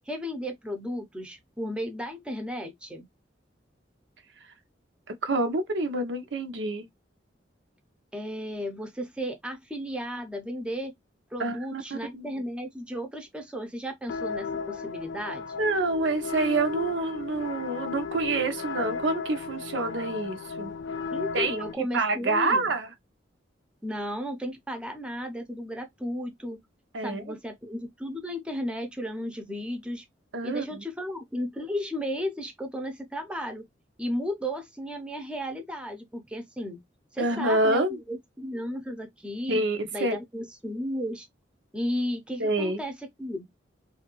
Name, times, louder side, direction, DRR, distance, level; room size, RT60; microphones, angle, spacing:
voice 1, 0.0-3.1 8.1-10.9 11.3-15.5 21.1-22.7 23.8-26.6 27.0-30.0 30.4-33.7 34.0-36.8 37.1-39.6 39.9-41.2 41.7-43.4, equal, 5° right, 0.6 m, -34 dB
voice 2, 5.2-6.9 11.4-12.3 15.6-20.7 21.3-22.9 26.9-27.4 30.3-30.8 37.2-38.0 39.5-40.2 42.4-42.8, right 2 dB, 85° right, 0.7 m, -27 dB
sound 1, 14.1-21.7, left 5 dB, 70° left, 0.4 m, -35 dB
2.7 x 2.4 x 2.9 m
head